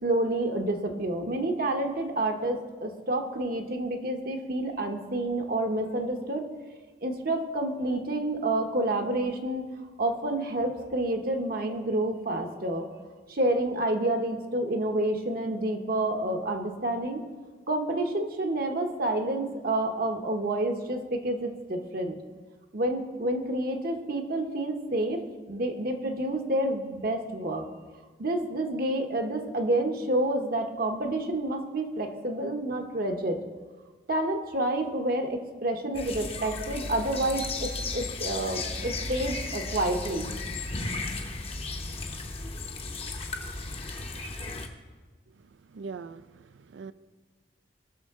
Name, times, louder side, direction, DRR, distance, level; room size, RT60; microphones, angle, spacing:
voice 1, 0.0-6.5 7.0-9.7 10.0-12.9 13.3-17.2 17.7-22.2 22.7-25.2 25.5-27.6 28.2-33.4 34.1-40.3, right 1 dB, 50° right, 4 dB, 0.9 m, -29 dB
sound 1, 35.9-44.7, left 3 dB, 30° left, 0.8 m, -35 dB
voice 2, 45.4-46.9, right 5 dB, 85° right, 14 dB, 0.4 m, -42 dB
18.0 x 6.3 x 3.6 m, 1.4 s
head